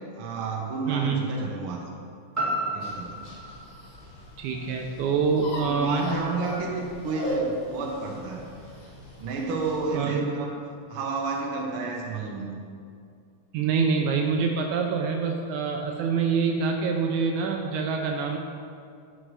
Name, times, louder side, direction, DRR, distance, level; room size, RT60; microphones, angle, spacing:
voice 1, 0.2-1.8 2.7-3.2 5.6-8.4 9.2-10.5 10.9-12.6, right 3 dB, 60° right, -1 dB, 1.4 m, -31 dB
voice 2, 0.9-1.2 4.4-6.0 9.9-10.3 13.5-18.4, right 5 dB, 80° right, 3 dB, 1.9 m, -25 dB
sound 1, 2.3-6.4 6.9-7.0, right 1 dB, 10° right, 0.7 m, -34 dB
sound 2, 2.8-10.0, right 1 dB, 70° left, 3.3 m, -38 dB
11.5 x 6.1 x 3.3 m, 2.3 s
omnidirectional pair, 3.6 m